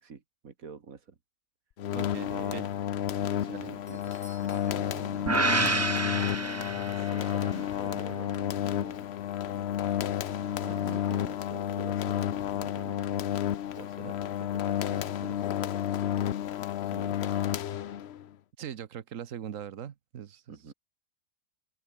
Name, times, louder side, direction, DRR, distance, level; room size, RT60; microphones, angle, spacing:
voice 1, 0.0-1.2 2.3-2.7 3.4-4.2 4.4-5.9 6.7-9.1 9.5-10.0 10.3-13.3 13.7-16.2 16.8-17.4 20.5-20.7, right 5 dB, 90° right, 2.3 m, -47 dB
sound 1, 1.8-18.3, left 10 dB, 60° left, 0.9 m, -31 dB
voice 2, 1.9-2.7 3.4-3.7 10.6-11.0 14.0-14.1 18.6-20.4, right 9 dB, 70° right, 1.4 m, -41 dB
Doorbell, 3.9-5.9 6.2-6.3 7.0-7.1, equal, 5° left, 5.6 m, -56 dB
sound 2, 5.3-7.5, right 3 dB, 20° right, 0.4 m, -29 dB
open air
omnidirectional pair, 1.4 m